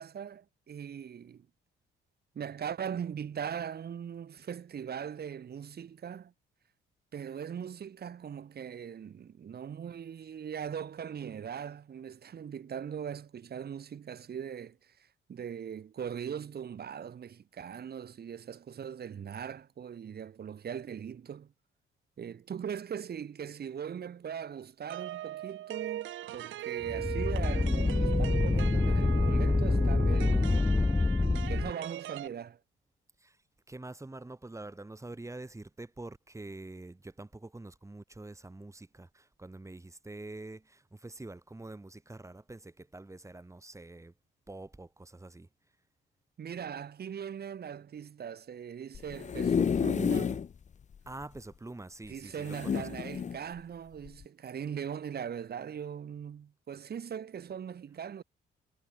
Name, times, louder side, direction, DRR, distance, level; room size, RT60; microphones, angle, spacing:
voice 1, 0.0-1.5 2.4-6.3 7.1-21.5 22.2-30.5 31.3-32.6 46.4-50.4 52.1-58.2, right 8 dB, 55° right, 3.7 m, -40 dB
sound 1, 24.9-32.3, right 13 dB, 80° right, 1.7 m, -39 dB
sound 2, 26.8-31.7, left 3 dB, 10° left, 0.4 m, -26 dB
voice 2, 33.7-44.1 44.5-45.5 51.1-52.9, right 2 dB, 15° right, 5.8 m, -46 dB
sound 3, 48.9-50.5 50.9-51.0 51.2-51.3 52.4-53.4 54.1-54.2, left 7 dB, 35° left, 0.8 m, -30 dB
cardioid pair, 90°, 20 cm